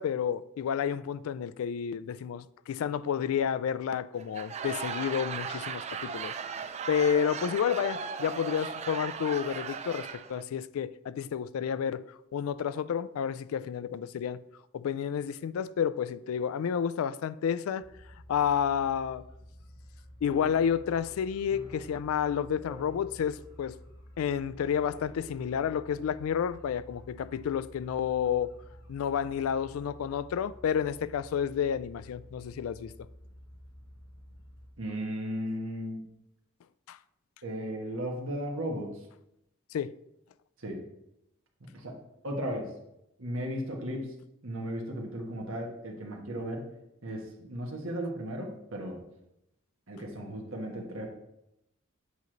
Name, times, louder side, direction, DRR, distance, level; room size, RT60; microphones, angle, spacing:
voice 1, 0.0-6.3 6.9-12.0 12.3-14.4 14.7-17.8 18.3-19.2 20.2-23.8 24.2-28.5 28.9-32.9 36.9-37.0 39.7-39.9, left 8 dB, 90° left, 0.3 m, -30 dB
Laughter / Crowd, 4.2-10.4, right 6 dB, 30° right, 0.3 m, -37 dB
sound 1, 17.8-34.7, equal, 60° left, 1.1 m, -51 dB
sound 2, 20.3-22.4 22.6-23.7 23.9-24.0 24.8-25.6, left 1 dB, 20° left, 0.6 m, -50 dB
voice 2, 34.8-36.0 37.4-39.1 40.6-40.8 41.6-42.0 42.2-42.7 43.2-44.1 44.4-46.7 47.0-49.0 49.9-51.1, equal, 75° right, 1.4 m, -35 dB
8.2 x 3.1 x 5.1 m
head